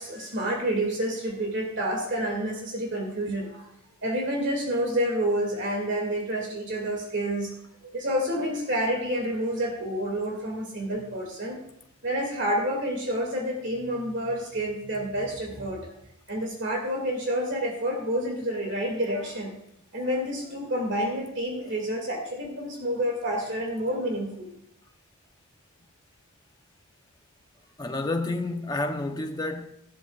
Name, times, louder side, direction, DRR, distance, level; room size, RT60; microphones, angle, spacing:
voice 1, 0.0-3.7 4.0-7.5 7.8-11.6 12.0-15.8 16.3-19.5 19.9-24.5, equal, 55° right, 2.3 m, -29 dB
voice 2, 27.8-29.7, left 2 dB, 20° left, 0.7 m, -29 dB
15.0 x 13.0 x 2.4 m
head